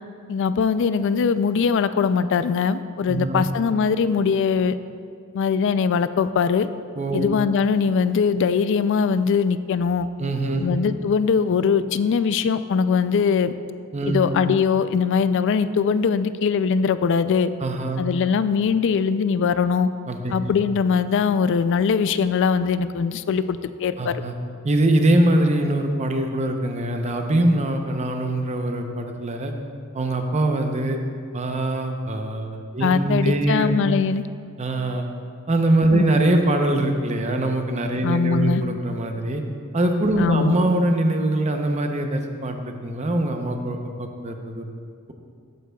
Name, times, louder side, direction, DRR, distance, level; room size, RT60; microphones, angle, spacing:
voice 1, 0.3-4.8 5.3-6.7 7.1-10.1 10.6-13.5 14.1-17.5 18.0-19.9 20.3-24.1 32.8-34.2 35.9-36.0 38.0-38.6 40.2-40.6, left 6 dB, 55° left, 13 dB, 0.3 m, -21 dB
voice 2, 3.0-3.4 7.0-7.3 10.2-10.7 13.9-14.3 17.6-18.0 20.1-20.3 24.0-24.3 24.6-29.5 29.9-31.0 31.3-33.8 34.6-35.1 35.5-39.4 39.7-44.6, right 1 dB, 30° right, 4 dB, 0.7 m, -23 dB
13.0 x 9.4 x 2.3 m, 2.2 s
head